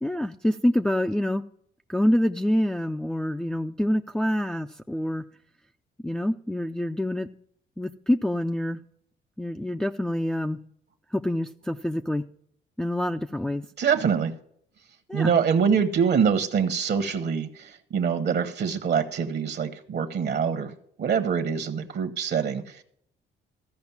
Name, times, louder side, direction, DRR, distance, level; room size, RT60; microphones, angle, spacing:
voice 1, 0.0-1.4 1.9-5.2 6.0-7.3 7.8-8.8 9.4-10.6 11.1-12.2 12.8-13.6 15.1-15.3, left 1 dB, 5° left, 5 dB, 0.4 m, -26 dB
voice 2, 13.8-14.3 15.1-20.7 21.0-22.6, right 7 dB, 55° right, 9 dB, 1.1 m, -24 dB
15.0 x 5.2 x 7.1 m, 0.68 s
cardioid pair, 90°, 20 cm